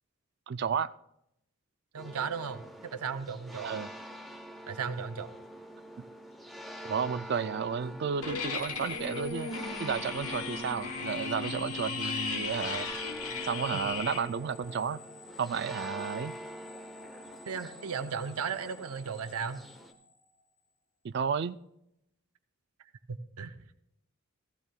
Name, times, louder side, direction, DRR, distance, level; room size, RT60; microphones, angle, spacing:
voice 1, 0.5-0.9 3.6-3.9 6.8-9.5 9.8-12.9 13.4-15.0 15.4-16.3 21.0-21.6, right 6 dB, 50° right, 14 dB, 0.3 m, -32 dB
voice 2, 1.9-3.7 4.7-5.3 17.5-19.6 23.1-23.8, right 6 dB, 90° right, 9 dB, 0.6 m, -36 dB
sound 1, 2.0-19.9, right 1 dB, ahead, 0.7 m, -45 dB
sound 2, 8.2-14.2, left 5 dB, 85° left, 1.1 m, -36 dB
sound 3, 8.4-20.6, left 3 dB, 30° left, 4.2 m, -53 dB
15.5 x 15.0 x 2.2 m, 0.81 s
head